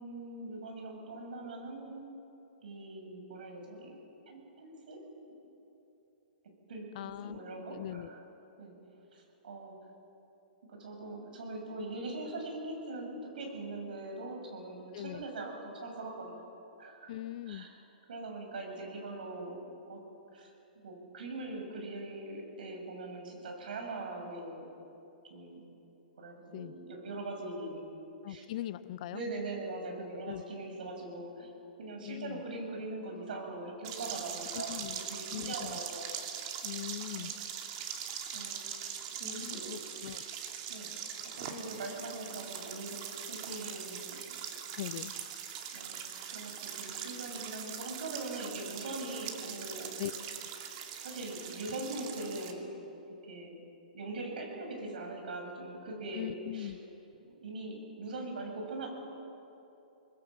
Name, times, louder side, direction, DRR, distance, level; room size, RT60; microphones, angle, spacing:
voice 1, 0.0-2.0 2.6-3.9 4.3-5.0 6.7-8.2 8.6-8.7 9.1-9.8 10.7-16.5 16.8-17.1 17.5-17.7 18.1-20.0 20.3-20.5 20.8-24.7 25.3-25.6 26.2-27.8 28.3-28.4 29.1-31.5 31.8-34.8 35.1-36.0 37.1-37.4 38.3-38.7 39.2-40.1 40.7-40.9 41.4-43.0 43.3-44.2 45.7-46.0 46.3-49.9 51.0-52.7 53.1-53.6 53.9-56.7 57.4-58.9, right 2 dB, 70° right, 2 dB, 7.1 m, -41 dB
voice 2, 6.9-7.4 7.7-8.1 14.9-15.2 17.1-17.7 26.5-26.8 28.2-29.2 30.2-30.4 32.0-32.4 34.5-35.0 35.3-35.8 36.6-37.3 39.2-40.2 44.8-45.1 50.0-50.1 56.1-56.8, left 13 dB, 50° left, 15 dB, 0.7 m, -40 dB
sound 1, 33.8-52.5, right 8 dB, 45° right, 2.7 m, -41 dB
26.5 x 20.5 x 7.4 m, 2.9 s
hypercardioid pair, 130°, 5 cm